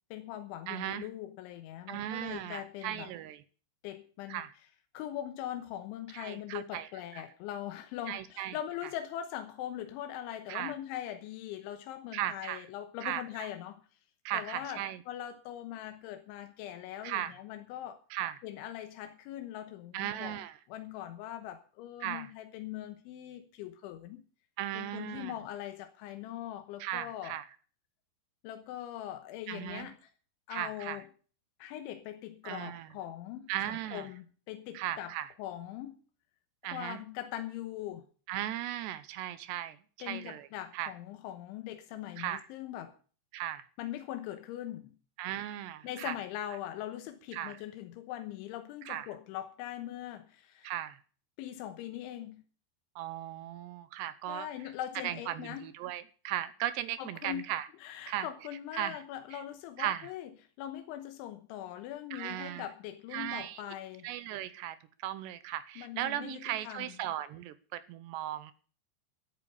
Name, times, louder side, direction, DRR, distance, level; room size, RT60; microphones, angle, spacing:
voice 1, 0.1-3.1 3.8-4.4 5.0-13.8 14.3-18.0 18.4-20.4 20.7-24.2 24.8-27.4 28.4-30.1 30.5-31.1 31.6-35.1 35.4-36.0 36.7-38.0 40.0-42.9 43.8-45.0 45.8-50.7 51.4-52.4 54.3-55.7 57.0-57.4 57.8-60.3 60.6-64.1 65.8-66.9, left 12 dB, 85° left, 8 dB, 3.4 m, -41 dB
voice 2, 0.7-1.1 1.9-3.4 4.3-4.5 6.1-6.9 7.1-7.2 8.1-8.6 10.5-10.7 12.1-12.6 13.0-13.2 14.3-15.0 17.0-17.3 18.1-18.3 19.9-20.5 22.0-22.3 24.6-25.3 26.8-27.5 29.5-29.9 30.5-31.0 32.4-32.9 33.5-34.1 34.7-35.3 36.6-37.0 38.3-40.5 40.7-40.9 42.2-42.4 43.3-43.6 45.2-46.2 47.3-47.6 48.9-49.1 50.6-51.0 53.0-54.5 55.0-57.7 58.1-58.3 58.7-59.0 59.3-59.4 59.8-60.1 62.1-62.7 63.1-63.6 64.0-68.5, right 12 dB, 75° right, 14 dB, 2.8 m, -37 dB
14.0 x 9.0 x 6.8 m, 0.40 s
omnidirectional pair, 5.3 m